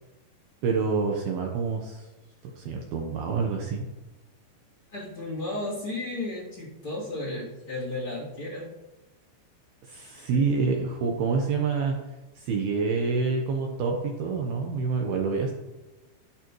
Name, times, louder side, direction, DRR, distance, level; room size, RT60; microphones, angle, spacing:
voice 1, 0.6-2.1 2.4-3.8 9.8-12.0 12.4-15.5, right 4 dB, 70° right, 1 dB, 2.5 m, -27 dB
voice 2, 4.9-8.7 10.1-10.5, left 2 dB, 30° left, -7 dB, 3.2 m, -34 dB
12.5 x 11.0 x 3.1 m, 1.1 s
omnidirectional pair, 5.2 m